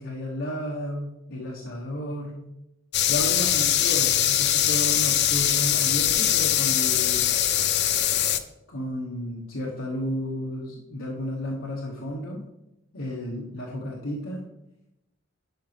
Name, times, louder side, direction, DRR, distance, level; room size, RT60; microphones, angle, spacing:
voice 1, 0.0-2.4 3.1-7.4 8.7-12.4 12.9-14.4, left 1 dB, 75° left, -4 dB, 1.1 m, -32 dB
sound 1, 2.9-8.4, left 11 dB, 60° left, 0.5 m, -22 dB
11.0 x 4.9 x 3.3 m, 0.91 s
head